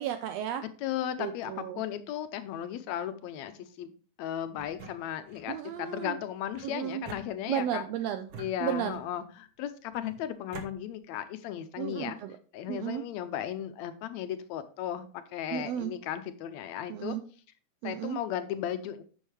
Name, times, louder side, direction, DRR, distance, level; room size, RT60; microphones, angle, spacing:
voice 1, 0.0-0.6 1.2-1.8 5.5-6.2 6.6-7.0 7.5-8.3 8.6-9.0 11.8-12.3 12.7-13.0 15.5-15.9 16.9-17.2 17.8-18.2, right 10 dB, 80° right, 9 dB, 1.5 m, -33 dB
voice 2, 0.8-3.9 4.2-7.9 8.4-12.2 12.5-17.2 17.8-19.0, left 10 dB, 80° left, 10 dB, 1.8 m, -36 dB
sound 1, 4.6-5.5 6.5-7.8 8.3-9.2 9.9-10.7, right 4 dB, 65° right, 1.3 m, -47 dB
9.9 x 6.3 x 3.2 m, 0.39 s
omnidirectional pair, 3.4 m